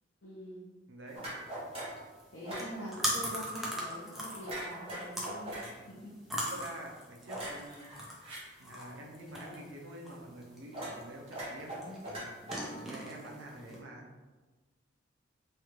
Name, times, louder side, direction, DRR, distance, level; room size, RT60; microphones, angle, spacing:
voice 1, 0.2-0.6 2.3-5.6 5.9-6.5, equal, 60° left, -9 dB, 0.7 m, -44 dB
voice 2, 0.9-1.3 5.5-5.9 6.4-7.9 8.6-12.3 12.7-14.1, right 1 dB, 75° right, -1 dB, 0.6 m, -47 dB
sound 1, 1.1-13.8, equal, ahead, 0.4 m, -41 dB
sound 2, 1.1-2.0 2.4-2.7 4.4-5.7 7.3-8.4 10.7-11.0 11.3-13.0, right 1 dB, 30° right, 0.8 m, -41 dB
3.2 x 2.4 x 3.0 m, 1.3 s
head